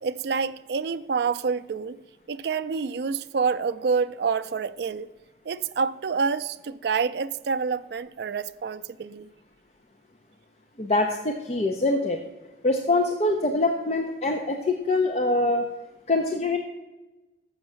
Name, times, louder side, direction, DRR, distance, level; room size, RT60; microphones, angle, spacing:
voice 1, 0.0-2.0 2.3-5.1 5.4-9.3, right 5 dB, 60° right, 0.3 m, -27 dB
voice 2, 10.8-12.2 12.6-15.7 16.1-16.6, left 2 dB, 35° left, 0.6 m, -24 dB
7.0 x 6.5 x 6.3 m
head